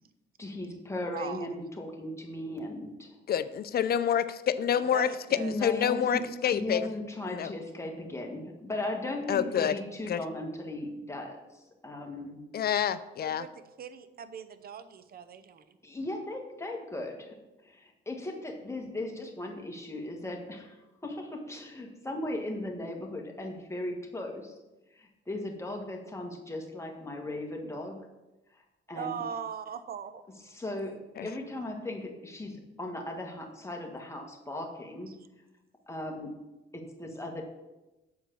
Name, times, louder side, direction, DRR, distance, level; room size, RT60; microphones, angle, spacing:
voice 1, 0.4-3.1 5.3-6.2 6.5-11.4 11.8-12.4 15.8-17.3 17.6-24.5 25.0-28.0 28.9-29.2 30.5-30.9 31.2-35.1 35.9-36.3 36.7-37.4, left 1 dB, 15° left, 1 dB, 1.6 m, -37 dB
voice 2, 1.1-1.5 4.9-5.5 13.2-15.8 28.9-30.2 35.1-35.3, right 7 dB, 50° right, 11 dB, 0.7 m, -40 dB
voice 3, 3.3-4.2 4.6-5.1 5.6-6.9 7.3-7.5 9.3-9.8 10.1-10.2 12.5-13.4 31.2-31.3, left 9 dB, 50° left, 14 dB, 0.5 m, -27 dB
7.4 x 4.6 x 6.9 m, 1.0 s
cardioid pair, 90°, 20 cm